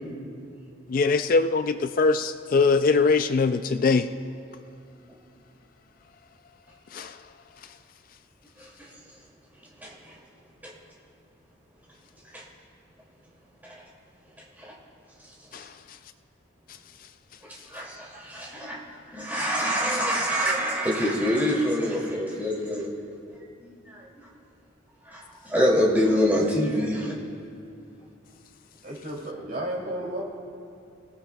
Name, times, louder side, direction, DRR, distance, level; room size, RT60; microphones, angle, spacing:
voice 1, 0.9-4.1 6.9-7.2 15.5-15.7, left 4 dB, 45° left, 10 dB, 0.3 m, -22 dB
voice 2, 8.6-9.0 9.8-10.2 10.6-10.7 12.2-12.5 13.6-13.9 14.6-14.7 15.2-15.4 17.4-22.9 23.4-24.3 25.0-27.2, equal, 10° right, -5 dB, 2.5 m, -26 dB
voice 3, 28.8-30.2, right 1 dB, 50° right, -3 dB, 2.8 m, -33 dB
26.0 x 17.0 x 2.3 m, 2.5 s
head